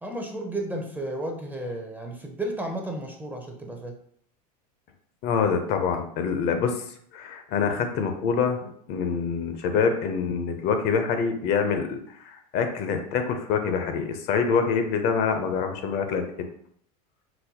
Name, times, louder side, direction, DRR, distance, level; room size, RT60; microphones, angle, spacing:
voice 1, 0.0-4.0, right 1 dB, 10° right, 2 dB, 0.5 m, -33 dB
voice 2, 5.2-6.8 7.1-16.3, left 6 dB, 55° left, 6 dB, 0.6 m, -26 dB
3.9 x 2.1 x 2.8 m, 0.64 s
hypercardioid pair, 100°, 20 cm